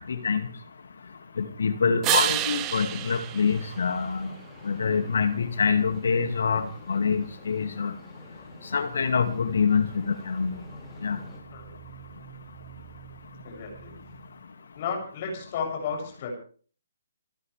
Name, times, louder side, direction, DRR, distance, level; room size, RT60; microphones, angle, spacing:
voice 1, 1.4-4.3 4.6-7.9 8.7-10.5 11.0-11.2, left 5 dB, 55° left, 8 dB, 2.4 m, -25 dB
sound 1, 2.0-4.6 10.3-14.3, right 14 dB, 20° right, 1.0 m, -33 dB
sound 2, 2.2-11.4, left 1 dB, ahead, 5.5 m, -48 dB
voice 2, 13.4-14.0 14.8-16.3, left 6 dB, 35° left, 2 dB, 8.0 m, -33 dB
29.5 x 14.0 x 3.5 m, 0.43 s
figure-of-eight pair, 135°, 0 cm